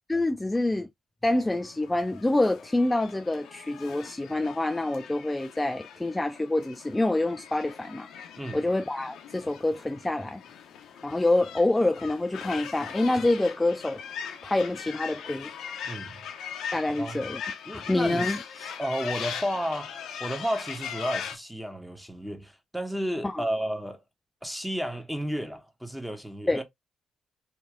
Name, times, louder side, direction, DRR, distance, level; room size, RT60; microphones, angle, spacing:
voice 1, 0.1-0.9 1.2-8.1 8.5-10.4 11.0-14.0 14.4-15.5 16.7-17.4 17.7-18.4 23.2-23.4 26.5-26.6, left 2 dB, 15° left, 0.4 m, -26 dB
sound 1, 1.5-21.4, left 7 dB, 65° left, 0.8 m, -40 dB
voice 2, 15.8-16.2 16.9-17.2 17.6-24.0 24.4-26.6, equal, 5° right, 1.3 m, -32 dB
4.4 x 2.8 x 2.4 m
figure-of-eight pair, 40°, 0 cm